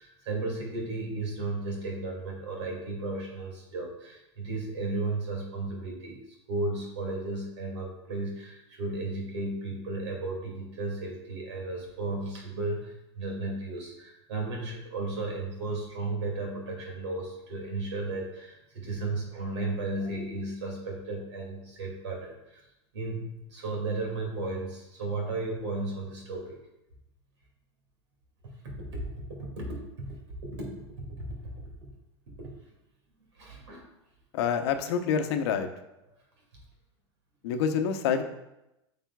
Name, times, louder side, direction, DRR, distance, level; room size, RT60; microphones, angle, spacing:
voice 1, 0.0-6.2 6.5-22.6 22.9-26.6 28.6-29.0 29.4-31.6 32.4-32.5 33.4-33.9, right 2 dB, 80° right, 0 dB, 2.3 m, -34 dB
voice 2, 34.3-35.7 37.4-38.2, left 7 dB, 70° left, 7 dB, 0.8 m, -27 dB
9.0 x 5.0 x 2.3 m, 0.90 s
hypercardioid pair, 95°, 15 cm